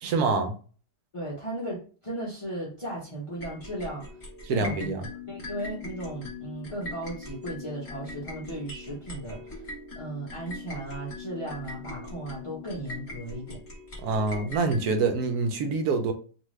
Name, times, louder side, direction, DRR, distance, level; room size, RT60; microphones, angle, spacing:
voice 1, 0.0-0.5 4.4-5.0 14.0-16.1, right 4 dB, 75° right, 1.1 m, -26 dB
voice 2, 1.1-4.0 4.5-9.7 9.9-13.6, right 1 dB, 40° left, 0.4 m, -36 dB
sound 1, 3.4-15.1, left 2 dB, 25° left, 1.2 m, -41 dB
2.6 x 2.5 x 3.1 m
omnidirectional pair, 1.7 m